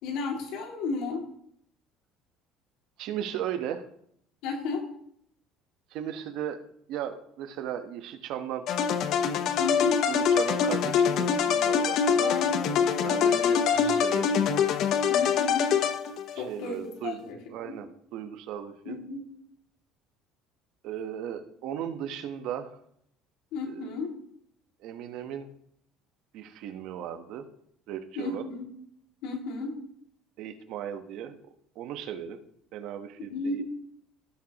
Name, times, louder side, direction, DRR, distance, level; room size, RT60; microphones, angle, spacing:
voice 1, 0.0-1.3 4.4-4.8 9.6-10.0 12.2-12.8 13.2-14.0 15.1-15.7 16.4-17.4 17.6-17.8 18.9-19.3 23.5-24.1 28.2-28.7 29.2-29.8 33.2-33.6, left 3 dB, 75° left, 2 dB, 2.2 m, -33 dB
voice 2, 3.0-3.8 5.9-6.6 6.9-8.7 10.1-14.4 16.3-17.2 17.5-19.0 20.8-22.8 23.7-23.8 24.8-25.5 26.3-27.5 27.9-28.4 30.4-31.4 31.8-32.4 32.7-33.6, right 10 dB, 65° right, 9 dB, 1.0 m, -36 dB
sound 1, 8.7-16.4, left 7 dB, 60° left, 0.8 m, -24 dB
17.0 x 6.3 x 2.9 m, 0.70 s
cardioid pair, 125°, 0 cm